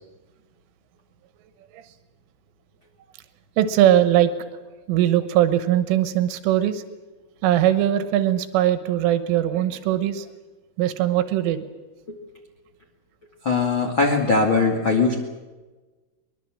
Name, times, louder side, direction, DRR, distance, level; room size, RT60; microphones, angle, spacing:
voice 1, 3.6-4.3 4.9-6.8 7.4-10.3 10.8-11.7, right 12 dB, 90° right, 10 dB, 3.7 m, -20 dB
voice 2, 13.4-15.2, left 4 dB, 40° left, 0 dB, 2.0 m, -20 dB
23.5 x 22.0 x 7.7 m, 1.2 s
omnidirectional pair, 5.6 m